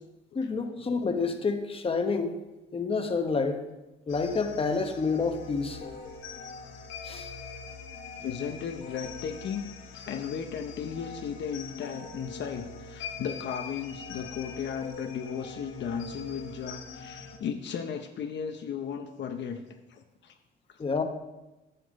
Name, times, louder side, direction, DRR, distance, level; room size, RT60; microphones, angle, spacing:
voice 1, 0.3-2.3 2.7-3.6 4.1-5.8 7.0-7.3 20.8-21.0, left 4 dB, 30° left, 5 dB, 0.9 m, -28 dB
sound 1, 4.1-17.4, left 5 dB, 80° left, 1.2 m, -43 dB
voice 2, 8.2-9.6 9.9-19.6 19.9-20.4 20.7-20.8, left 7 dB, 65° left, 5 dB, 0.7 m, -35 dB
7.9 x 6.0 x 5.2 m, 1.0 s
cardioid pair, 90°, 20 cm